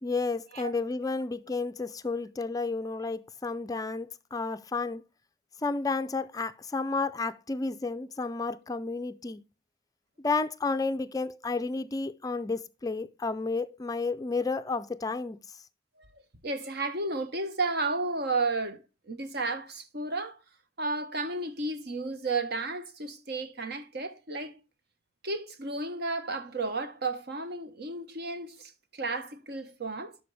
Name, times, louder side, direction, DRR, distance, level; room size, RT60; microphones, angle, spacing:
voice 1, 0.0-5.0 5.6-9.4 10.2-15.4, left 3 dB, 20° left, 0.4 m, -31 dB
voice 2, 16.1-20.4 20.8-24.6 25.2-30.2, right 3 dB, 60° right, 1.2 m, -33 dB
12.0 x 5.1 x 3.3 m
head